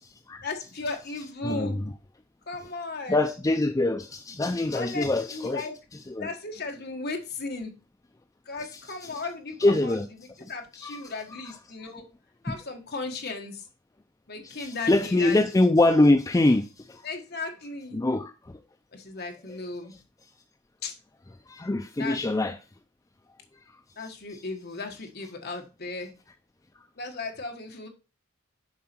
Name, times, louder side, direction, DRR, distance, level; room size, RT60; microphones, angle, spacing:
voice 1, 0.4-1.8 2.5-3.2 4.7-5.7 6.2-7.7 8.4-10.0 10.5-12.1 12.4-13.7 14.3-15.4 17.0-18.0 18.9-19.9 20.8-21.0 22.0-22.2 24.0-26.1 27.0-27.9, left 3 dB, 50° left, 1.5 m, -36 dB
voice 2, 1.4-1.9 3.1-5.7 6.1-6.3 9.1-9.2 9.6-10.1 10.8-11.0 12.5-12.6 14.4-17.0 17.9-18.5 19.5-19.6 21.5-22.6 24.0-24.4, left 2 dB, 15° left, 0.4 m, -24 dB
7.3 x 4.8 x 4.4 m
head